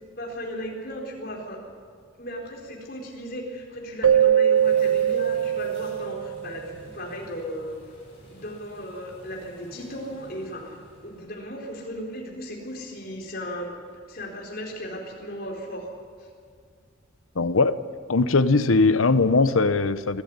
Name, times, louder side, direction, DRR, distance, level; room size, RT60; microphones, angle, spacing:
voice 1, 0.2-1.6 2.2-7.8 8.3-15.9 16.2-16.3, equal, 45° left, -1 dB, 4.5 m, -36 dB
Keyboard (musical), 4.0-6.8, right 9 dB, 90° right, 0.6 m, -21 dB
sound 1, 4.5-11.2, left 1 dB, 30° left, 7.9 m, -50 dB
voice 2, 17.3-17.8 18.1-20.2, left 3 dB, 85° left, 14 dB, 0.9 m, -20 dB
24.0 x 13.5 x 9.7 m, 2.1 s
head